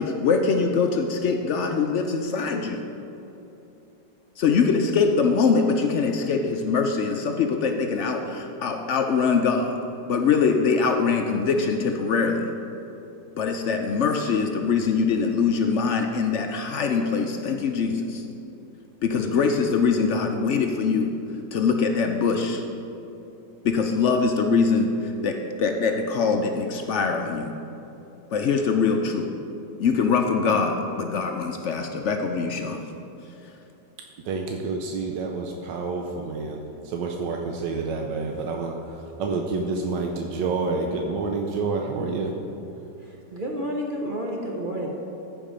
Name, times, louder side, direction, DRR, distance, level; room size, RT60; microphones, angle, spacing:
voice 1, 0.0-2.8 4.4-9.8 10.1-12.5 13.4-18.2 19.0-21.1 21.5-22.6 23.6-27.5 28.3-29.3 29.8-32.8, left 5 dB, 70° left, 4 dB, 0.6 m, -23 dB
voice 2, 34.2-42.3, right 4 dB, 90° right, 2 dB, 1.3 m, -28 dB
voice 3, 43.0-44.9, equal, 45° right, -1 dB, 0.7 m, -30 dB
14.0 x 5.0 x 5.0 m, 2.9 s
omnidirectional pair, 1.9 m